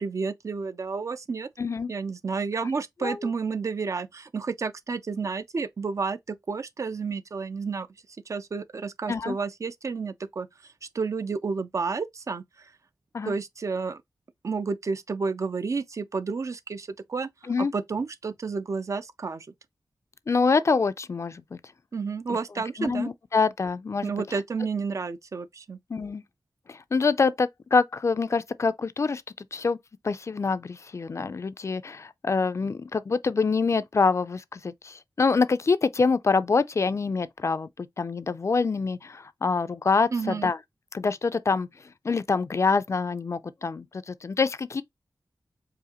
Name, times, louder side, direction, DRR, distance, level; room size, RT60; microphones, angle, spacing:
voice 1, 0.0-1.5 1.9-7.9 8.3-10.5 10.9-12.7 13.3-14.0 14.4-17.3 17.6-19.5 21.9-23.1 24.0-25.8 40.1-40.5, right 4 dB, 45° right, 0.4 m, -31 dB
voice 2, 1.6-1.9 3.0-3.2 9.1-9.4 13.1-13.3 17.5-17.7 20.3-21.6 22.8-24.1 25.9-26.2 26.7-29.8 30.0-40.6 40.9-41.7 42.0-44.8, left 4 dB, 40° left, 0.4 m, -25 dB
4.8 x 2.5 x 2.9 m
wide cardioid pair, 115°, 7 cm